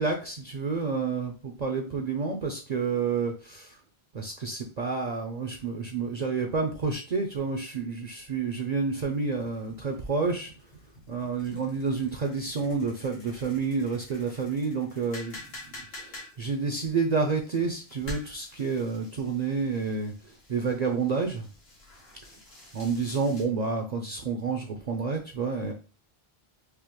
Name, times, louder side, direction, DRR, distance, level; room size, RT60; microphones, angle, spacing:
voice 1, 0.0-3.8 4.1-10.5 11.1-15.4 15.7-21.5 22.7-25.7, right 4 dB, 50° right, 3 dB, 0.6 m, -29 dB
sound 1, 9.0-23.4, left 1 dB, 75° left, 1.4 m, -48 dB
5.0 x 2.0 x 3.0 m, 0.33 s
omnidirectional pair, 1.0 m